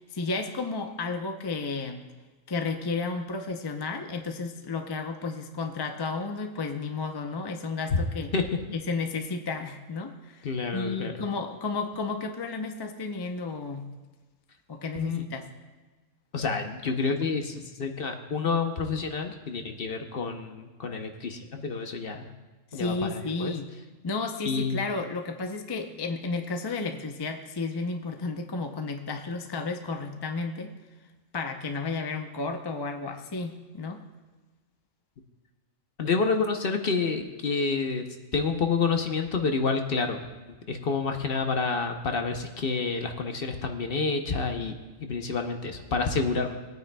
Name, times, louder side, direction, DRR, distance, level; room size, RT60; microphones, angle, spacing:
voice 1, 0.1-2.0 2.5-8.3 8.7-10.5 10.7-13.9 14.7-15.5 22.7-23.7 24.0-30.7 31.3-34.0, left 3 dB, 30° left, 5 dB, 0.5 m, -32 dB
voice 2, 10.4-11.1 14.9-15.2 16.3-22.3 22.7-23.5 24.4-24.8 36.0-38.0 38.3-40.2 40.5-44.7 45.0-46.6, left 4 dB, 50° left, 5 dB, 0.9 m, -28 dB
20.0 x 9.3 x 2.2 m, 1.2 s
omnidirectional pair, 1.3 m